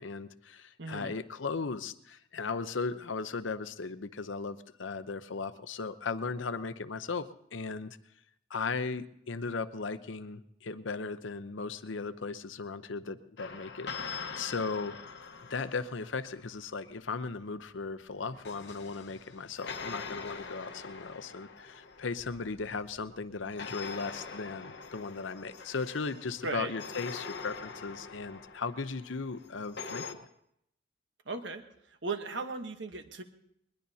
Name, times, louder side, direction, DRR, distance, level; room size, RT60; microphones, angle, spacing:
voice 1, 0.0-8.0 8.5-15.0 15.5-30.0, left 4 dB, 85° left, 12 dB, 0.7 m, -37 dB
voice 2, 0.8-1.1 26.4-26.7 31.3-31.6 32.0-33.2, right 3 dB, 75° right, 7 dB, 1.1 m, -36 dB
sound 1, 13.4-16.5 18.1-23.0 23.6-30.1, left 5 dB, 65° left, 1.0 m, -44 dB
21.5 x 21.0 x 2.8 m, 0.74 s
head